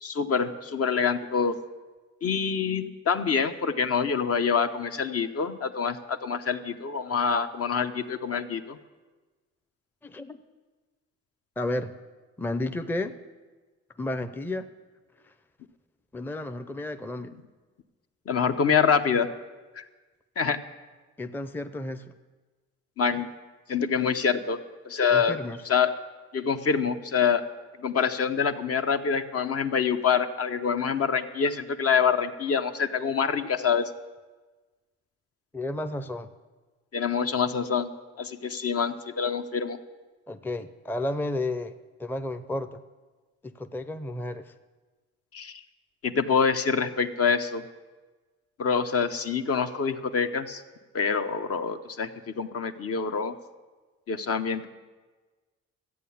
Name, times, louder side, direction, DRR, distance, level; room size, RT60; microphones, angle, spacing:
voice 1, 0.0-1.5 2.2-8.8 18.3-19.3 19.8-19.9 20.4-20.6 23.0-23.3 23.7-24.6 24.8-25.4 25.6-25.9 26.3-27.4 27.8-33.9 36.9-37.9 38.2-39.8 45.3-45.6 46.0-47.6 48.6-50.6 50.9-53.3 54.1-54.7, left 6 dB, 50° left, 8 dB, 0.8 m, -26 dB
voice 2, 10.0-10.4 11.6-11.9 12.4-13.2 14.0-14.7 16.1-17.3 21.2-22.1 25.1-25.6 35.5-36.3 40.3-41.7 42.0-42.8 43.4-44.5, left 2 dB, 5° left, 9 dB, 0.5 m, -32 dB
13.5 x 8.5 x 7.1 m, 1.3 s
cardioid pair, 90°, 30 cm